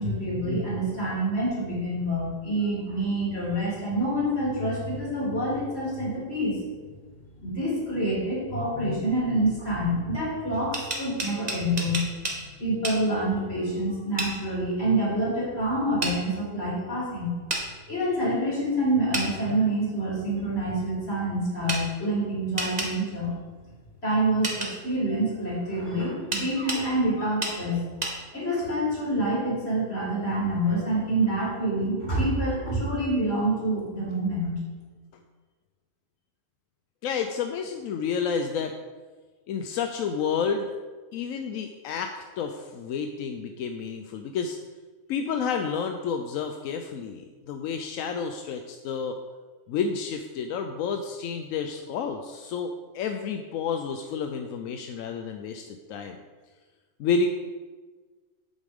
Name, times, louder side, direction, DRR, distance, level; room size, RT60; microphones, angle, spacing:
voice 1, 0.0-6.6 7.4-12.1 12.6-17.3 17.9-23.3 24.0-27.9 28.3-34.7, right 1 dB, 50° left, -7 dB, 3.6 m, -27 dB
sound 1, 10.5-12.4 12.8-13.0 14.2-14.3 16.0-16.2 17.5-17.6 19.1-19.3 21.7-21.8 22.6-22.9 24.4-24.7 26.3-26.8 27.4-27.6 28.0-28.2, right 2 dB, 30° right, 1.4 m, -29 dB
voice 2, 37.0-38.7 39.5-40.7 41.1-44.6 45.1-49.2 49.7-56.2 57.0-57.3, left 6 dB, 85° left, 6 dB, 1.0 m, -30 dB
9.2 x 8.2 x 3.6 m, 1.4 s
omnidirectional pair, 1.4 m